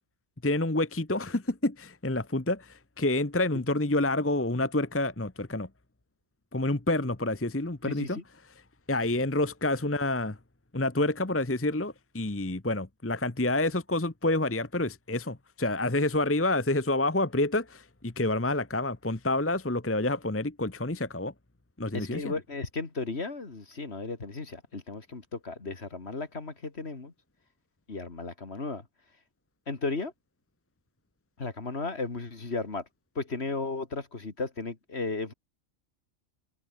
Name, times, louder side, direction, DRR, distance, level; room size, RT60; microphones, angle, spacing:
voice 1, 0.4-5.7 6.5-8.2 8.9-10.4 10.7-21.3 21.8-22.3, left 2 dB, 10° left, 1.1 m, -28 dB
voice 2, 7.8-8.2 21.9-27.1 27.9-28.8 29.7-30.1 31.4-32.8 33.2-35.3, left 3 dB, 45° left, 2.6 m, -35 dB
open air
omnidirectional pair, 1.5 m